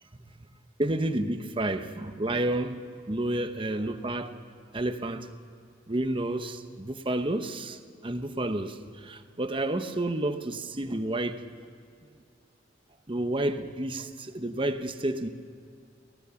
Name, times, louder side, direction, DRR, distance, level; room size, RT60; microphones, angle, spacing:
voice 1, 0.8-2.8 3.1-4.4 4.7-5.3 5.9-11.4 13.1-15.3, right 1 dB, 25° right, 8 dB, 0.9 m, -30 dB
24.0 x 16.5 x 7.0 m, 2.3 s
head